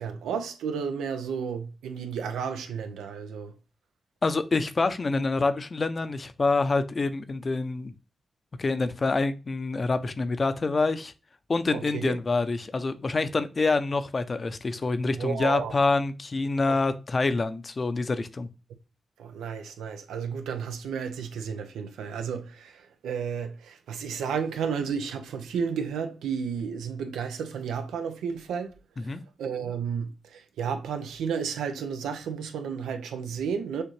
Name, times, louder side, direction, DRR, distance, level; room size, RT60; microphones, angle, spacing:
voice 1, 0.0-3.6 11.7-12.2 15.0-15.7 16.7-16.8 19.2-28.7 29.0-29.1 29.4-33.8, right 6 dB, 85° right, 0.5 m, -32 dB
voice 2, 4.2-7.9 8.6-11.1 11.5-18.5 29.0-29.2, left 3 dB, 45° left, 0.6 m, -26 dB
6.5 x 2.5 x 3.1 m
supercardioid pair, 40°, 0 cm